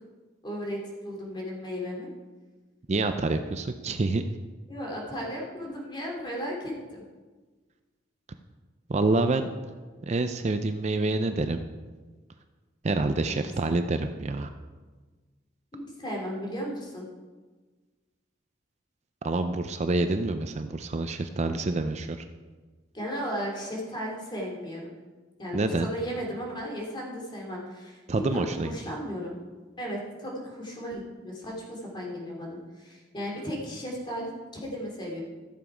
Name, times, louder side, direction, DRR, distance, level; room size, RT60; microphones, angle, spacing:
voice 1, 0.4-2.1 4.7-7.0 13.1-13.5 15.7-17.0 22.9-24.9 25.4-29.3 29.8-34.3 34.6-35.2, equal, 25° left, -2 dB, 2.9 m, -35 dB
voice 2, 2.9-4.2 8.9-9.5 10.0-11.6 12.8-14.5 19.2-22.2 25.5-25.9 28.1-28.7, right 2 dB, 35° right, 8 dB, 0.5 m, -27 dB
14.5 x 7.3 x 5.0 m, 1.4 s
head